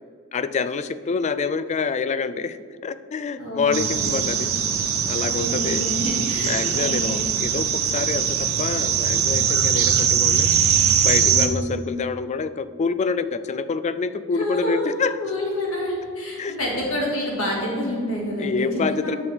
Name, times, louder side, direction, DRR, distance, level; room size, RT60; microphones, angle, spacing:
voice 1, 0.3-2.6 2.8-4.5 5.1-5.9 6.4-10.5 11.0-15.2 16.4-16.5 18.4-19.2, left 5 dB, 35° left, 13 dB, 0.3 m, -26 dB
voice 2, 3.4-4.5 5.2-7.3 11.3-11.8 14.3-14.9 15.2-19.2, equal, 75° left, -3 dB, 2.3 m, -28 dB
sound 1, 3.7-11.5, right 7 dB, 80° right, 0.8 m, -21 dB
9.7 x 6.4 x 3.6 m, 2.2 s
head